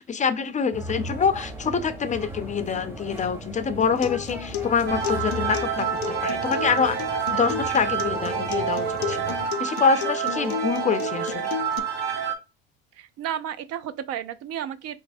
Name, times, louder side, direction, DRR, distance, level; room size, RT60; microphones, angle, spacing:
voice 1, 0.0-7.0 7.3-11.5, left 6 dB, 25° left, 0.4 m, -26 dB
sound 1, 0.7-9.5, right 1 dB, 10° right, 0.9 m, -38 dB
Acoustic guitar, 3.8-11.8, left 11 dB, 90° left, 0.5 m, -34 dB
sound 2, 4.9-12.4, right 7 dB, 35° right, 1.0 m, -28 dB
voice 2, 13.0-15.0, right 10 dB, 55° right, 0.5 m, -32 dB
4.2 x 3.2 x 2.6 m
supercardioid pair, 90°, 30 cm